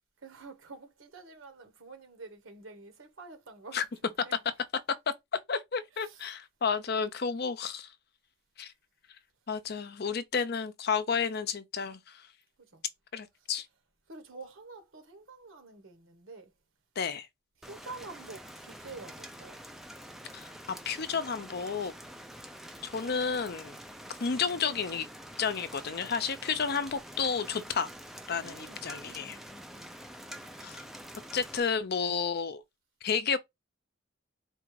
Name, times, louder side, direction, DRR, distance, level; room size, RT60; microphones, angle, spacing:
voice 1, 0.2-4.4 4.9-5.0 5.9-6.4 12.6-12.8 13.4-13.5 14.1-16.5 17.6-19.6 28.4-29.9, right 3 dB, 75° right, 1.2 m, -49 dB
voice 2, 5.5-7.9 8.6-8.7 9.5-12.3 13.1-13.7 17.0-17.3 20.3-20.5 20.9-21.9 22.8-23.8 24.2-25.1 25.4-27.9 28.3-29.4 30.6-30.8 31.3-32.6 33.0-33.4, left 6 dB, 50° left, 0.5 m, -31 dB
Rain, 17.6-31.6, equal, ahead, 0.4 m, -46 dB
4.3 x 2.5 x 4.7 m
head